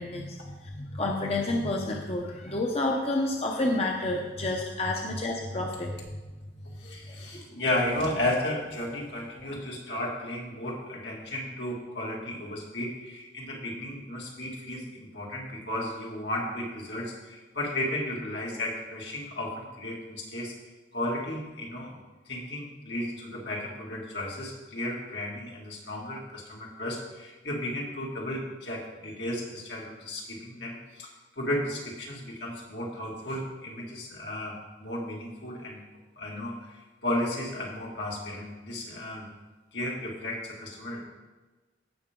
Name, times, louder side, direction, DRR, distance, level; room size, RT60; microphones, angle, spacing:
voice 1, 0.0-6.0 6.8-7.6, left 2 dB, 35° left, 1 dB, 0.8 m, -30 dB
voice 2, 6.8-20.5 20.9-22.0 22.3-31.1 31.4-35.8 36.2-39.3 39.7-41.0, left 1 dB, 75° left, -2 dB, 2.4 m, -34 dB
16.5 x 6.0 x 3.8 m, 1.2 s
head